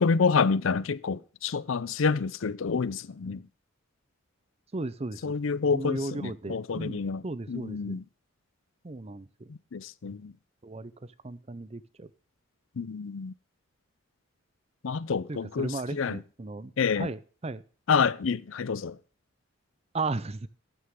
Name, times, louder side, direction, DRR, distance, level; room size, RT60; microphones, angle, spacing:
voice 1, 0.0-3.5 5.2-8.0 9.5-10.3 12.8-13.3 14.8-16.2 16.8-17.1 17.9-19.0, left 5 dB, 70° left, 0.5 m, -28 dB
voice 2, 4.7-5.4 5.7-8.0 8.8-9.5 10.6-10.9 11.2-12.1 15.3-17.6 19.9-20.5, right 3 dB, 30° right, 0.6 m, -36 dB
12.5 x 9.6 x 3.6 m
head